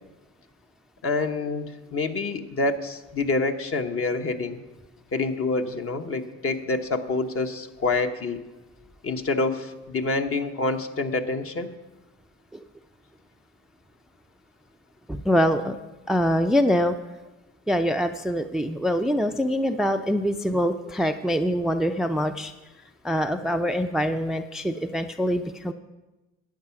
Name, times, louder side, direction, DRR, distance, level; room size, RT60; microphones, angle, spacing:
voice 1, 1.0-4.6 5.1-8.4 9.0-11.7, left 3 dB, 45° left, 6 dB, 1.1 m, -27 dB
voice 2, 15.1-15.8 16.1-17.0 17.7-22.5 23.0-25.7, equal, ahead, 8 dB, 0.4 m, -24 dB
11.5 x 8.7 x 5.8 m, 1.1 s
cardioid pair, 85°, 32 cm